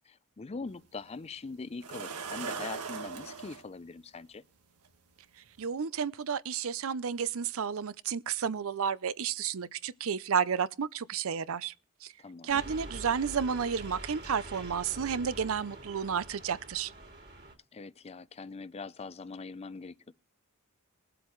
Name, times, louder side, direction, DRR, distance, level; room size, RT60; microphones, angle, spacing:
voice 1, 0.1-4.4 12.2-12.6 17.7-20.1, left 4 dB, 30° left, 0.4 m, -42 dB
sound 1, 0.7-0.8 1.8-3.6 4.8-4.9 5.5-5.6, right 6 dB, 85° right, 1.5 m, -39 dB
voice 2, 5.6-11.7 12.0-12.1 12.4-16.9, right 7 dB, 65° right, 0.5 m, -31 dB
sound 2, 12.5-17.6, right 1 dB, 50° right, 3.1 m, -45 dB
21.0 x 7.8 x 3.1 m
head